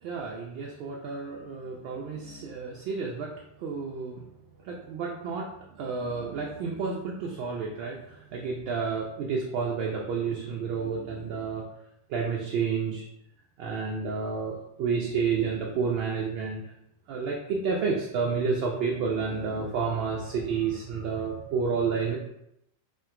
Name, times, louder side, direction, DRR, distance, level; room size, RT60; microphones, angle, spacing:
voice 1, 0.0-3.3 3.6-4.2 4.6-11.6 12.1-13.0 13.6-16.6 17.1-22.2, right 5 dB, 45° right, -1 dB, 0.4 m, -30 dB
2.7 x 2.1 x 2.4 m, 0.80 s
figure-of-eight pair, 90°, 0 cm